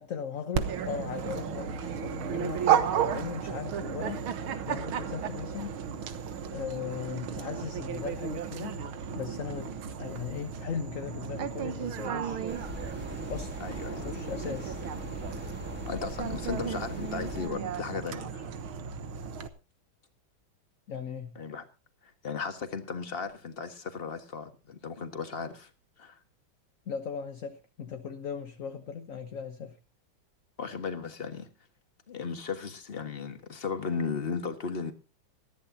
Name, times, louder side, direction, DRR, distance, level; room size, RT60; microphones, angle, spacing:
voice 1, 0.0-4.2 4.7-5.8 6.5-8.8 9.1-12.4 13.3-13.6 14.0-14.8 20.9-21.4 26.9-29.8, left 7 dB, 50° left, 1.2 m, -38 dB
Dog, 0.5-19.5, right 8 dB, 90° right, 2.0 m, -34 dB
sound 1, 12.5-17.5, equal, 5° right, 2.2 m, -41 dB
voice 2, 13.6-14.0 15.8-18.5 21.3-21.6 22.0-25.7 26.0-26.2 30.6-31.5 32.1-34.9, left 5 dB, 30° left, 1.6 m, -36 dB
19.5 x 14.0 x 2.8 m
omnidirectional pair, 2.2 m